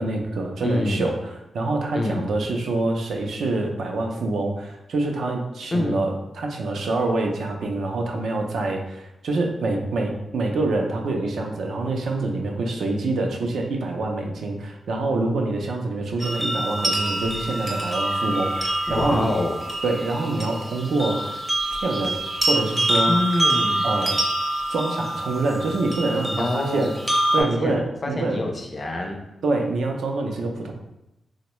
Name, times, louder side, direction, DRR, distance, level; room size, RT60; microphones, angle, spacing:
voice 1, 0.0-19.3 19.8-21.4 21.8-22.2 22.5-23.1 23.8-24.2 24.7-26.9 27.3-28.4 29.4-30.7, right 2 dB, 75° right, 2 dB, 0.4 m, -26 dB
voice 2, 0.6-1.2 1.9-2.2 5.7-6.0 18.9-19.6 23.0-23.9 26.4-27.0 27.4-27.8 28.0-29.2, left 2 dB, 30° left, 3 dB, 0.4 m, -26 dB
sound 1, 16.2-27.4, right 1 dB, 15° right, 0.5 m, -26 dB
3.6 x 2.1 x 3.0 m, 0.90 s
wide cardioid pair, 160°, 0 cm